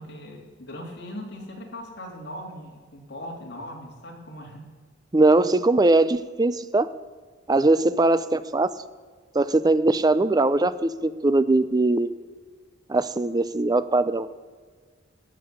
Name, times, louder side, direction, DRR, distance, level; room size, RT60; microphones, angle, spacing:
voice 1, 0.0-4.6, equal, 60° left, -1 dB, 3.2 m, -39 dB
voice 2, 5.1-6.9 7.5-8.7 9.3-12.1 12.9-14.3, right 2 dB, 20° right, 14 dB, 0.5 m, -21 dB
16.0 x 6.2 x 9.8 m, 1.5 s
head